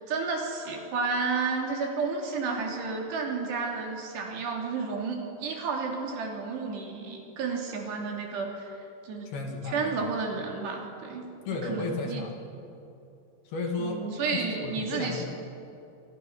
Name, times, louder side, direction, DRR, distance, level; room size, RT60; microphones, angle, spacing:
voice 1, 0.0-8.7 9.0-9.3 9.7-11.3 11.6-12.2 13.8-15.3, right 4 dB, 70° right, 1 dB, 5.2 m, -31 dB
voice 2, 9.3-10.1 11.5-12.3 13.5-15.2, left 3 dB, 60° left, 2 dB, 4.2 m, -33 dB
29.0 x 25.5 x 6.3 m, 2.7 s
omnidirectional pair, 5.1 m